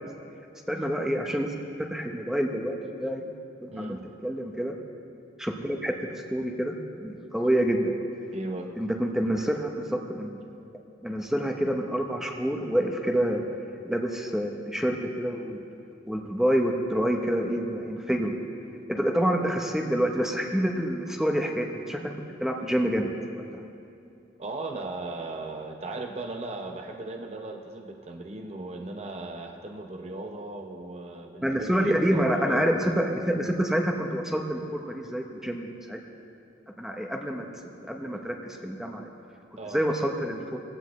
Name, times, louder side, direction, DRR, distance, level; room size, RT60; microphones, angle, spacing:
voice 1, 0.7-1.5 1.8-3.2 3.6-4.0 4.2-4.7 5.4-5.9 6.3-6.7 7.0-8.0 8.8-10.4 11.0-13.5 13.8-15.7 16.1-18.3 18.9-22.1 22.4-23.1 31.4-36.0 36.8-37.4 37.8-39.1 39.7-40.6, equal, ahead, 2 dB, 0.8 m, -27 dB
voice 2, 3.7-4.0 8.3-8.7 24.4-32.6 39.6-39.8, right 2 dB, 35° right, 3 dB, 0.8 m, -37 dB
18.0 x 15.5 x 3.1 m, 2.5 s
head